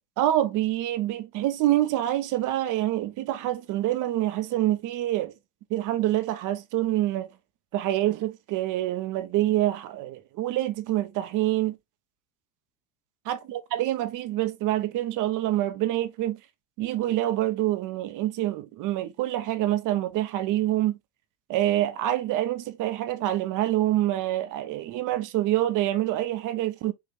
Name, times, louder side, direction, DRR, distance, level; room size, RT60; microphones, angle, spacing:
voice 1, 0.2-5.3 5.7-7.3 7.7-11.8 13.3-16.4 16.8-21.0 21.5-26.9, right 14 dB, 45° right, 0.8 m, -26 dB
5.6 x 2.8 x 3.1 m
hypercardioid pair, 85°, 45 cm